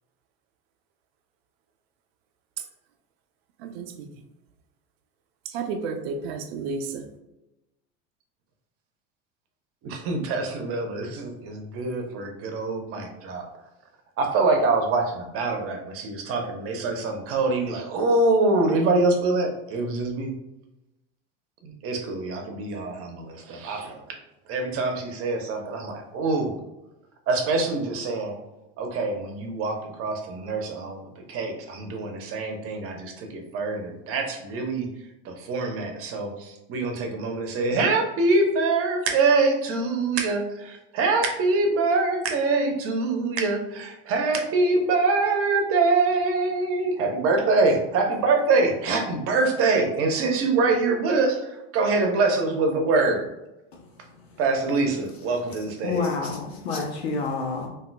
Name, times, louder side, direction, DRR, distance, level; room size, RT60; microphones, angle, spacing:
voice 1, 3.6-4.1 5.4-7.1, right 4 dB, 80° right, 7 dB, 0.6 m, -32 dB
voice 2, 9.8-13.4 14.2-20.3 21.6-24.2 24.5-26.6 27.3-28.3 28.8-34.9 35.2-53.3 54.4-56.1, right 3 dB, 45° right, 3 dB, 0.8 m, -24 dB
voice 3, 55.8-57.7, left 4 dB, 90° left, 1 dB, 0.9 m, -28 dB
3.8 x 2.6 x 2.2 m, 0.96 s
supercardioid pair, 110°, 31 cm